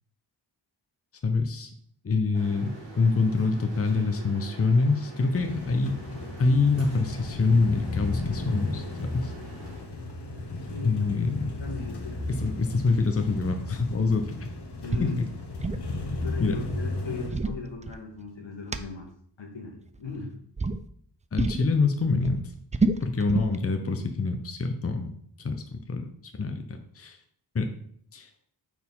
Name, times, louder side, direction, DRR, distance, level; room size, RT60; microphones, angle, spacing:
voice 1, 1.2-1.7 2.0-2.7 3.0-6.0 6.4-9.3 10.8-11.5 12.3-14.3 15.0-15.1 16.4-16.6 21.3-22.4 23.0-25.1 25.4-26.1 26.4-27.2 27.5-27.7 28.1-28.3, left 4 dB, 30° left, 6 dB, 0.7 m, -25 dB
sound 1, 2.3-9.8, right 1 dB, 85° right, 1.9 m, -45 dB
sound 2, 5.3-17.3, left 2 dB, 65° left, 1.3 m, -35 dB
voice 2, 10.7-11.1 11.6-12.2 14.8-15.2 16.2-19.1 19.4-20.3, left 4 dB, 85° left, 1 dB, 1.6 m, -37 dB
sound 3, 14.9-15.1 15.4-15.9 17.0-18.3 18.7-18.8 19.9-20.2 20.6-20.8 21.4-21.7 22.0-23.6, right 3 dB, 15° right, 0.4 m, -28 dB
4.5 x 4.2 x 5.5 m, 0.62 s
cardioid pair, 55°, 44 cm